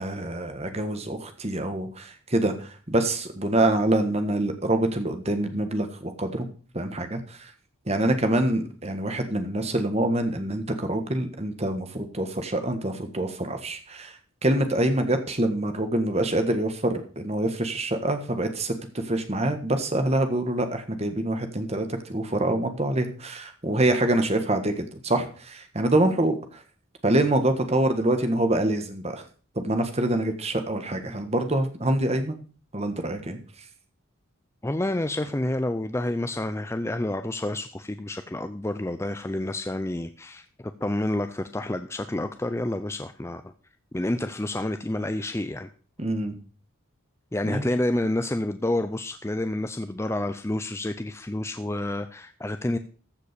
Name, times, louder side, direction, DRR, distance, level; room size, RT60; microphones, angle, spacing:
voice 1, 0.0-6.5 6.7-7.5 7.9-14.2 14.4-26.6 27.0-29.2 29.5-32.3 32.7-33.4 46.0-46.3 47.4-47.7, right 1 dB, 30° right, 7 dB, 1.5 m, -25 dB
voice 2, 34.6-43.5 43.9-45.7 47.3-52.8, left 1 dB, 10° left, 9 dB, 0.5 m, -29 dB
14.5 x 5.2 x 6.8 m, 0.40 s
head